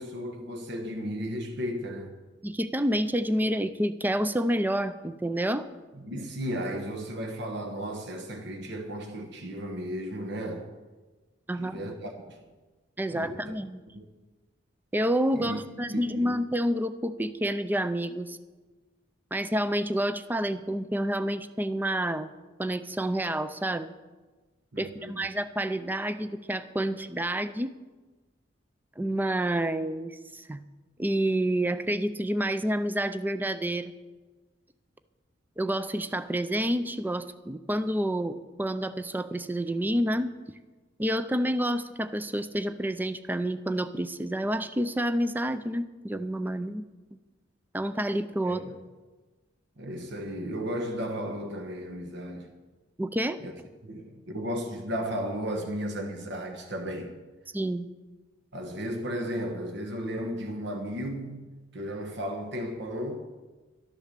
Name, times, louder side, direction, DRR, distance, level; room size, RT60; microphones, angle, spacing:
voice 1, 0.0-2.1 5.9-10.7 11.5-12.4 13.1-13.4 13.9-14.0 15.3-15.6 15.9-16.4 24.7-25.2 48.4-48.7 49.8-52.5 53.4-53.5 53.8-57.2 58.5-63.3, equal, 65° right, 1.2 m, -34 dB
voice 2, 2.4-5.7 11.5-11.8 13.0-13.8 14.9-18.4 19.3-22.3 22.6-23.9 24.8-27.7 29.0-30.6 31.0-33.9 35.6-40.3 41.0-46.8 47.7-48.7 53.0-53.4 57.5-57.9, right 1 dB, 10° right, 0.5 m, -29 dB
12.0 x 10.5 x 6.7 m
head